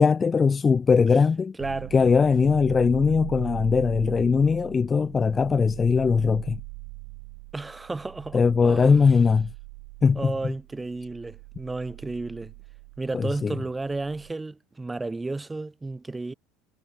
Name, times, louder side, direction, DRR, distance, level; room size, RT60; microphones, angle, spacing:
voice 1, 0.0-1.5 1.9-6.6 8.3-9.5 10.0-10.2 13.1-13.5, left 5 dB, 25° left, 0.6 m, -20 dB
voice 2, 1.6-1.9 7.5-9.0 10.2-12.5 13.0-16.3, right 3 dB, 15° right, 5.6 m, -33 dB
sound 1, 1.6-14.3, right 40 dB or more, 70° right, 3.6 m, -41 dB
hypercardioid pair, 85°, 0 cm